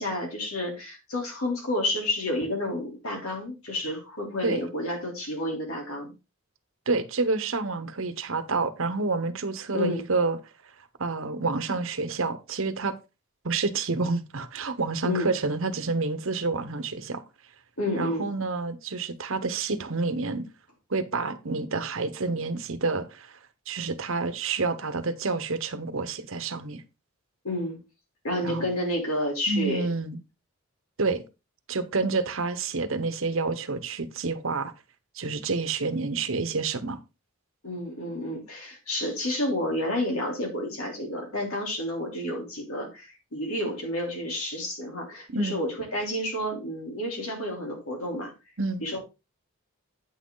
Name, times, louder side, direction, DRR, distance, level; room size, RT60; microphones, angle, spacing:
voice 1, 0.0-6.1 9.7-10.0 15.0-15.3 17.8-18.3 27.4-27.8 28.2-29.9 37.6-48.3 48.8-49.0, left 1 dB, 80° left, 3.3 m, -30 dB
voice 2, 6.9-10.4 11.0-13.0 13.4-17.2 17.9-20.5 20.9-23.4 23.7-26.8 28.4-28.7 29.5-30.2 31.0-31.2 31.7-34.7 35.2-37.0 45.3-45.6 48.6-48.8, right 3 dB, 65° right, 1.0 m, -28 dB
9.0 x 6.3 x 3.8 m
head